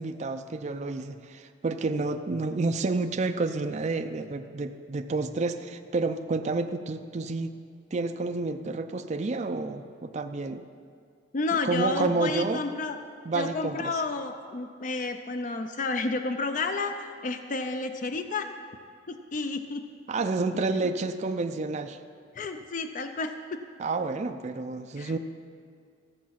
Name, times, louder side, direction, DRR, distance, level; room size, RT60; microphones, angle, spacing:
voice 1, 0.0-7.6 7.9-10.6 11.6-12.6 13.3-14.0 20.1-22.0 23.8-25.2, right 3 dB, 40° right, 7 dB, 0.4 m, -29 dB
voice 2, 11.3-13.0 13.3-18.5 19.1-19.8 20.5-20.9 22.3-23.6 25.0-25.1, left 3 dB, 45° left, 8 dB, 0.5 m, -31 dB
15.0 x 7.3 x 5.8 m, 2.2 s
head